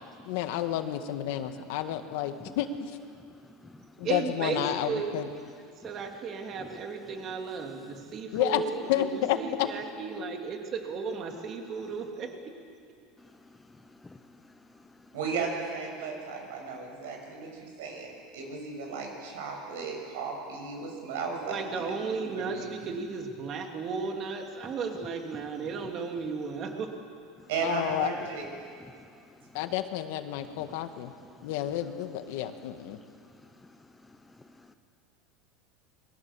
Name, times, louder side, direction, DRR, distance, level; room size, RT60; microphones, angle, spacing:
voice 1, 0.3-3.0 4.0-5.3 8.3-9.7 27.6-28.2 29.5-31.1 31.4-33.0, left 11 dB, 65° left, 1.7 m, -30 dB
voice 2, 2.1-2.5 3.1-4.1 5.8-8.2 11.8-12.0 13.2-15.2 24.6-24.7 25.0-25.5 25.8-25.9 27.4-27.5 28.8-29.7 30.4-31.9 32.4-34.7, left 2 dB, 10° left, 0.9 m, -54 dB
voice 3, 4.0-5.2 5.8-9.0 9.3-12.3 21.5-26.9, right 5 dB, 30° right, 2.8 m, -34 dB
voice 4, 15.1-21.9 22.2-22.7 27.5-28.5, right 5 dB, 80° right, 7.5 m, -35 dB
28.0 x 22.5 x 7.5 m
supercardioid pair, 165°, 0 cm